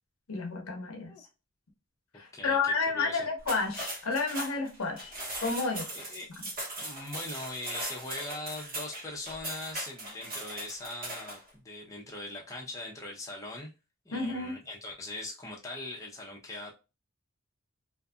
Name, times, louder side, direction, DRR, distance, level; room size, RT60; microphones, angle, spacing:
voice 1, 0.3-1.1 2.1-5.1 5.4-5.9 6.4-6.5 14.1-14.6, left 4 dB, 80° left, 0.7 m, -31 dB
voice 2, 2.3-3.3 5.9-6.3 6.8-13.7 14.0-16.7, left 2 dB, 15° left, 0.6 m, -41 dB
sound 1, 3.4-11.5, right 1 dB, 45° right, 1.3 m, -39 dB
2.5 x 2.5 x 2.3 m
head